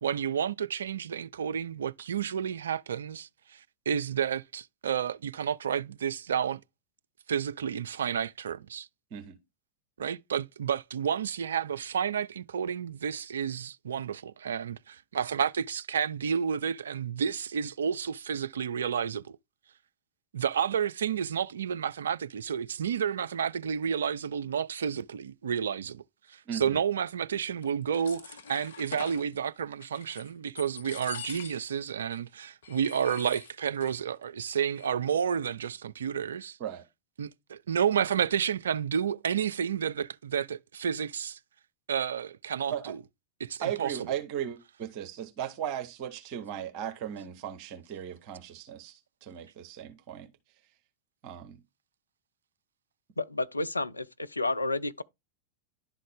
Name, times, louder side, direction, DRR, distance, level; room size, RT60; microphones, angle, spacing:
voice 1, 0.0-3.6 3.9-6.6 7.3-8.9 10.0-19.4 20.3-26.0 26.3-36.6 37.2-41.4 41.9-43.0 43.4-44.0, right 8 dB, 65° right, 0.3 m, -31 dB
voice 2, 26.5-26.8 36.6-36.8 42.7-42.9 43.6-50.3 51.2-51.6, right 9 dB, 45° right, 1.2 m, -37 dB
sound 1, 27.6-29.2 29.8-30.3 30.6-31.8 32.1-32.2 32.6-34.0 34.2-34.3 34.6-35.1, left 5 dB, 65° left, 0.8 m, -44 dB
voice 3, 53.2-55.0, left 2 dB, 80° left, 0.4 m, -31 dB
11.0 x 3.8 x 3.6 m
figure-of-eight pair, 90°, 0 cm